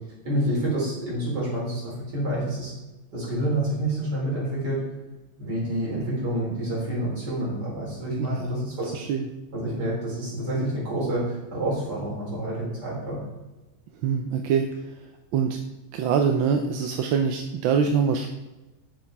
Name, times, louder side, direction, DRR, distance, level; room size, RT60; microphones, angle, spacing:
voice 1, 0.2-2.7 3.1-4.8 5.4-9.0 9.5-13.3, right 1 dB, 50° right, -5 dB, 4.4 m, -28 dB
voice 2, 8.9-9.3 14.0-15.0 15.3-15.6 15.9-18.3, right 6 dB, 70° right, 5 dB, 1.3 m, -24 dB
9.0 x 7.2 x 4.6 m, 1.1 s
omnidirectional pair, 2.4 m